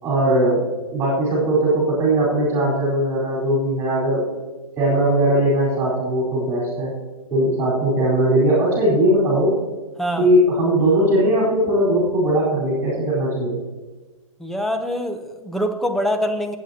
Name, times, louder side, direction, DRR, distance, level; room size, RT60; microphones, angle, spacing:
voice 1, 0.0-0.6 0.9-4.2 4.8-6.9 7.3-9.6 10.2-13.6, right 1 dB, 15° right, -5 dB, 4.1 m, -19 dB
voice 2, 14.4-16.6, equal, ahead, 5 dB, 0.6 m, -24 dB
19.0 x 8.5 x 2.8 m, 1.2 s
hypercardioid pair, 140°, 18 cm